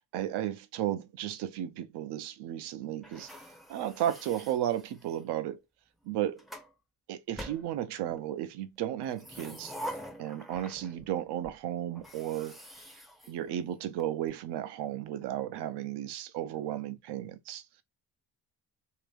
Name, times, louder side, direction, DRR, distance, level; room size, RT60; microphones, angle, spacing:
voice 1, 0.0-3.3 3.7-5.6 6.1-6.4 7.1-9.7 10.2-12.6 13.3-17.6, right 11 dB, 85° right, 0.7 m, -34 dB
sound 1, 3.0-5.3 6.0-6.7 7.4-8.3 9.0-11.2 11.4-11.6 12.0-14.0, equal, ahead, 0.4 m, -45 dB
3.6 x 2.8 x 3.4 m
cardioid pair, 155°, 39 cm